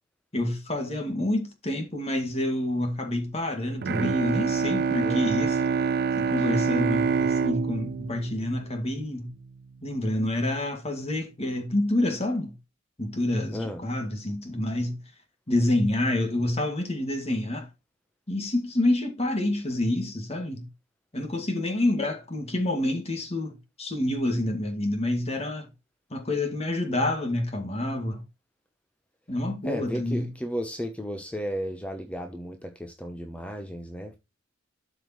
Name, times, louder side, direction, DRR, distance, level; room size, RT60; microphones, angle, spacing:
voice 1, 0.3-5.6 6.2-9.3 9.8-12.6 13.0-15.0 15.5-17.7 18.3-20.7 21.1-25.7 26.1-28.2 29.3-30.3, left 1 dB, 35° left, 2.0 m, -28 dB
Bowed string instrument, 3.8-9.4, right 5 dB, 55° right, 0.4 m, -26 dB
voice 2, 13.5-13.8 29.6-34.2, equal, 5° left, 0.8 m, -34 dB
12.5 x 5.0 x 3.0 m
head